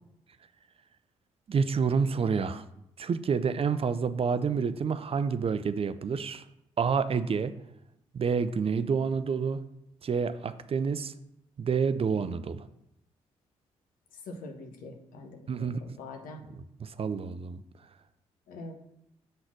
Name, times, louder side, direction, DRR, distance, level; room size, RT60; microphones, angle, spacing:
voice 1, 1.5-2.6 3.0-6.4 6.8-7.5 8.1-9.6 10.0-11.1 11.6-12.7 15.5-16.0 16.8-17.6, right 5 dB, 40° right, 13 dB, 0.5 m, -28 dB
voice 2, 14.2-16.4 18.5-18.7, left 2 dB, 70° left, 4 dB, 1.1 m, -44 dB
6.5 x 4.0 x 6.0 m, 0.81 s
hypercardioid pair, 40°, 15 cm